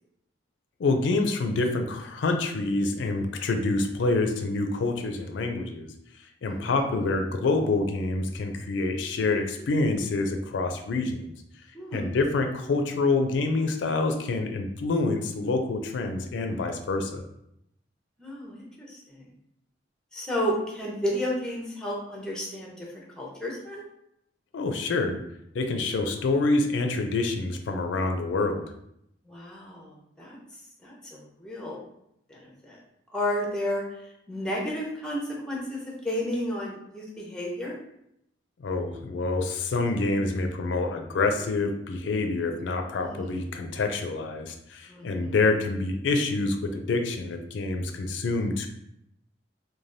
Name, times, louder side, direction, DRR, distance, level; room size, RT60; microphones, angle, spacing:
voice 1, 0.8-5.9 6.4-11.3 11.9-17.2 24.5-25.2 25.5-28.6 38.6-48.7, left 3 dB, 90° left, 5 dB, 0.4 m, -27 dB
voice 2, 6.4-6.7 11.7-12.1 18.2-19.2 20.1-23.8 29.3-30.4 30.8-31.8 32.3-32.8 33.1-33.8 34.3-35.2 35.5-37.8 43.0-43.4 44.9-45.3, equal, 5° left, -3 dB, 0.6 m, -32 dB
3.2 x 2.2 x 2.5 m, 0.76 s
head